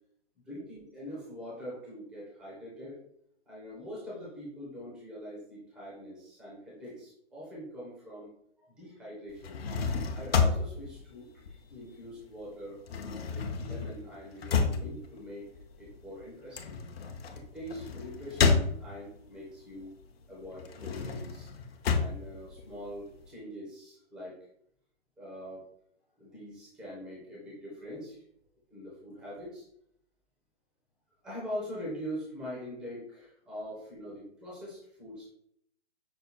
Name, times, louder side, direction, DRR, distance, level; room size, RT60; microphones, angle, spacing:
voice 1, 0.4-3.0 3.5-8.3 8.6-9.6 10.1-12.8 13.3-15.5 15.8-16.9 17.3-19.9 20.3-21.5 21.9-24.4 25.2-25.6 26.2-28.2 28.7-29.6 31.2-35.3, equal, ahead, -7 dB, 0.5 m, -43 dB
sound 1, 9.3-12.2 12.4-19.3 19.7-23.3, left 5 dB, 55° left, 0.8 m, -31 dB
5.7 x 2.2 x 4.0 m, 0.70 s
hypercardioid pair, 150°, 35 cm